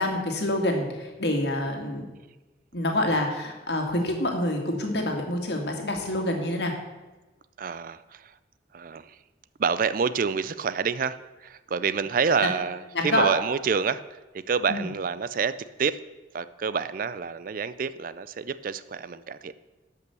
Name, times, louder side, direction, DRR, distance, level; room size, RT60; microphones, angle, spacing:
voice 1, 0.0-2.1 2.7-6.7 12.9-13.3 14.7-14.9, left 1 dB, 65° left, 3 dB, 2.1 m, -27 dB
voice 2, 7.6-8.3 8.7-9.2 9.6-11.2 11.4-14.2 14.5-16.0 16.3-19.5, right 6 dB, 50° right, 15 dB, 0.4 m, -28 dB
12.5 x 5.6 x 6.9 m, 1.1 s
head